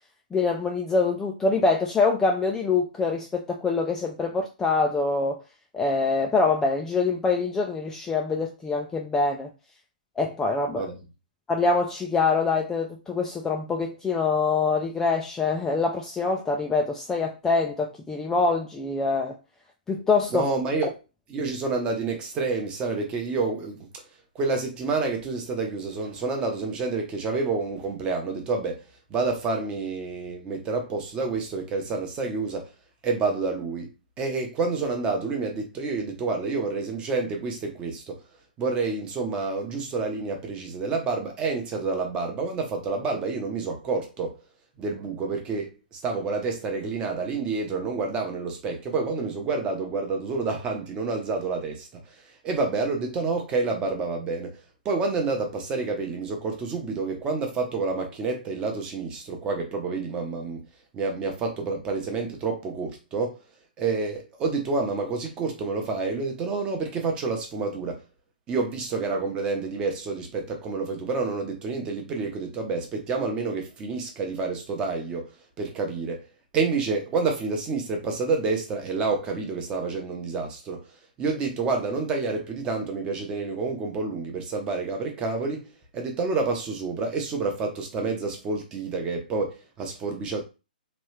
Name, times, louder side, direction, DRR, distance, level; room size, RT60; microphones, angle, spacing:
voice 1, 0.3-5.4 5.7-9.5 10.2-10.9 11.5-19.3 19.9-20.5, left 4 dB, 10° left, 0.3 m, -25 dB
voice 2, 20.3-20.9 21.3-23.9 24.4-28.8 29.1-32.7 33.0-33.9 34.2-38.2 38.6-44.3 44.8-51.9 52.4-54.6 54.8-60.6 60.9-63.4 63.8-68.0 68.5-75.3 75.6-76.2 76.5-80.8 81.2-85.6 85.9-90.4, right 4 dB, 20° right, 0.8 m, -28 dB
3.0 x 2.4 x 3.1 m
hypercardioid pair, 140°, 5 cm